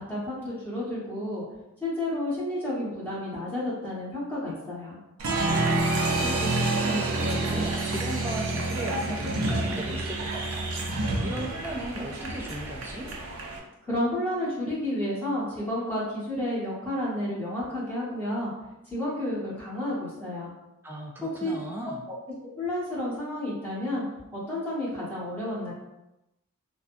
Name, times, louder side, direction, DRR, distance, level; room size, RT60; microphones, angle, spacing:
voice 1, 0.0-1.4 1.8-5.0 13.8-18.5 18.8-20.5 21.2-21.5 22.4-24.0 24.3-25.7, left 1 dB, 10° left, -10 dB, 1.1 m, -31 dB
Applause, 5.2-13.6, right 2 dB, 70° right, 0.5 m, -28 dB
voice 2, 6.0-13.1 20.8-22.0, right 1 dB, 10° right, -1 dB, 0.3 m, -37 dB
3.5 x 2.2 x 2.5 m, 0.93 s
head